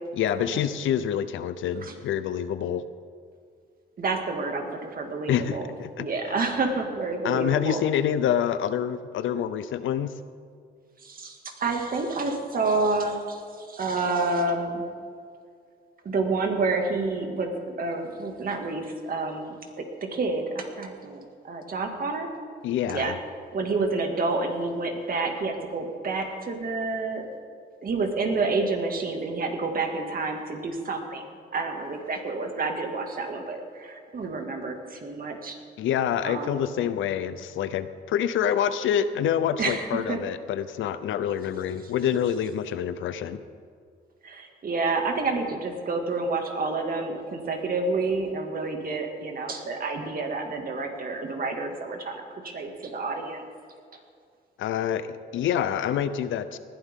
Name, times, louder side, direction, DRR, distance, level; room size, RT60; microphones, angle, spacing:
voice 1, 0.1-2.8 5.3-6.1 7.2-10.1 22.6-23.2 35.8-43.4 54.6-56.6, left 9 dB, 75° left, 12 dB, 0.7 m, -27 dB
voice 2, 4.0-5.7 6.0-7.8 11.0-14.8 16.0-22.3 22.9-23.1 23.5-27.3 27.8-31.2 31.5-35.6 36.2-36.6 39.6-40.2 44.2-53.4, right 3 dB, 45° right, 3 dB, 2.2 m, -29 dB
19.5 x 12.0 x 3.7 m, 2.2 s
cardioid pair, 90°, 20 cm